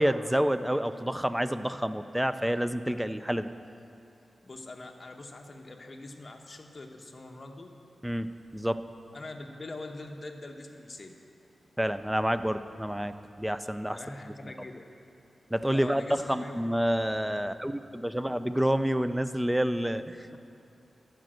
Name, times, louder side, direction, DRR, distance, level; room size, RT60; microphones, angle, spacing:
voice 1, 0.0-3.5 8.0-8.8 11.8-14.0 15.5-20.4, equal, 5° right, 11 dB, 0.4 m, -28 dB
voice 2, 4.4-7.7 9.1-11.2 13.9-14.9 15.7-16.5 20.3-20.4, left 2 dB, 40° left, 3 dB, 0.9 m, -43 dB
12.0 x 5.1 x 7.7 m, 2.6 s
wide cardioid pair, 95°, 0 cm